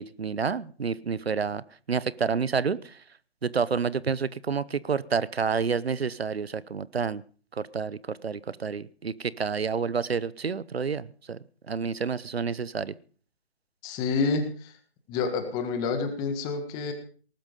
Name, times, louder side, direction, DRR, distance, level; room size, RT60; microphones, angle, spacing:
voice 1, 0.0-1.6 1.9-2.8 3.4-7.2 7.6-11.4 11.7-12.9, right 5 dB, 65° right, 19 dB, 1.0 m, -29 dB
voice 2, 13.8-14.7 15.1-16.9, left 4 dB, 10° left, 7 dB, 1.6 m, -28 dB
19.0 x 12.0 x 5.3 m, 0.43 s
figure-of-eight pair, 150°, 33 cm